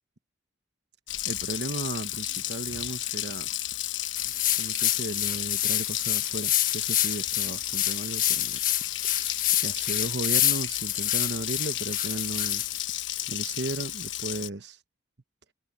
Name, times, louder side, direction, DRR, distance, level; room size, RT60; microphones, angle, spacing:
Water tap faucet, 1.1-14.5, left 13 dB, 85° left, 1.2 m, -33 dB
voice 1, 1.2-3.5 4.5-8.6 9.1-9.2 9.6-12.6 13.3-14.8, right 2 dB, 65° right, 1.1 m, -35 dB
sound 1, 4.1-12.8, left 12 dB, 45° left, 1.6 m, -28 dB
head